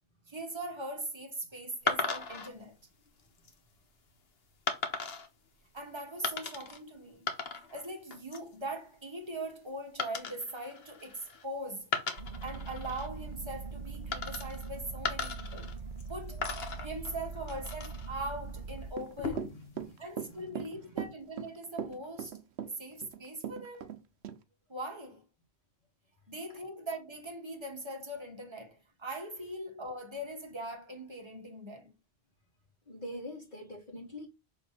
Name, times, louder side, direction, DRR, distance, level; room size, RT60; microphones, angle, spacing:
voice 1, 0.3-2.7 5.7-7.3 7.5-11.9 12.4-15.7 16.1-16.4 16.8-19.5 20.0-22.4 22.8-23.9 24.7-25.2 26.3-31.9, right 1 dB, 25° right, 1.6 m, -41 dB
sound 1, 1.9-2.5 3.2-3.5 4.7-5.3 6.2-6.8 7.1-7.8 8.1-8.5 10.0-11.4 11.8-13.1 14.1-14.7 15.0-16.1 16.4-18.1 19.0-19.6, left 4 dB, 70° left, 1.4 m, -36 dB
sound 2, 12.2-18.9, right 4 dB, 50° right, 1.0 m, -42 dB
Run / Walk footsteps, 18.9-24.0 24.2-24.4, right 8 dB, 80° right, 1.0 m, -39 dB
voice 2, 19.5-21.1 22.7-22.8 32.9-34.3, left 1 dB, 40° left, 1.9 m, -46 dB
7.0 x 3.5 x 4.2 m
omnidirectional pair, 1.1 m